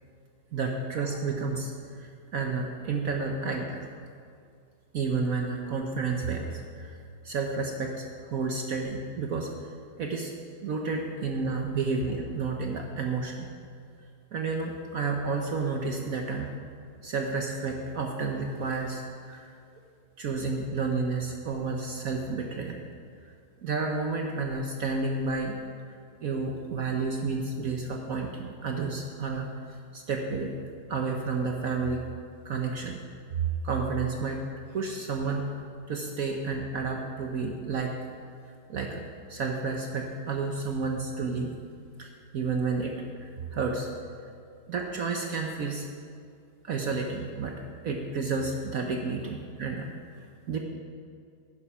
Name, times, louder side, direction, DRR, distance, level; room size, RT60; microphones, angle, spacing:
voice 1, 0.5-3.9 4.9-7.0 7.2-9.5 10.0-13.5 14.3-16.5 17.0-19.5 20.2-22.8 23.2-23.3 23.6-25.6 26.2-29.5 29.9-30.5 30.9-32.0 32.4-33.0 33.3-34.4 34.7-35.5 35.9-38.0 38.7-41.5 42.0-43.9 44.7-45.9 46.6-50.6, right 4 dB, 60° right, 2 dB, 1.0 m, -31 dB
10.5 x 9.7 x 5.7 m, 2.3 s
omnidirectional pair, 2.2 m